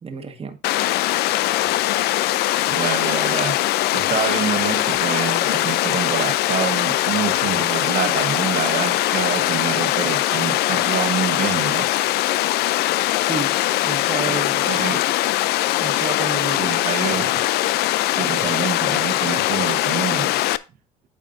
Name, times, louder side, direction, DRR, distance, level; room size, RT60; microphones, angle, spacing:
voice 1, 0.0-1.0 13.2-13.6 13.8-14.6 14.9-15.0 15.8-16.7, right 5 dB, 30° right, 1.5 m, -31 dB
Water, 0.6-20.6, left 15 dB, 65° left, 0.5 m, -21 dB
voice 2, 2.7-3.6 3.9-11.9 14.3-14.4 14.6-15.0 16.6-17.3 18.0-20.4, right 9 dB, 50° right, 1.3 m, -27 dB
9.0 x 7.2 x 2.6 m
supercardioid pair, 80°, 18 cm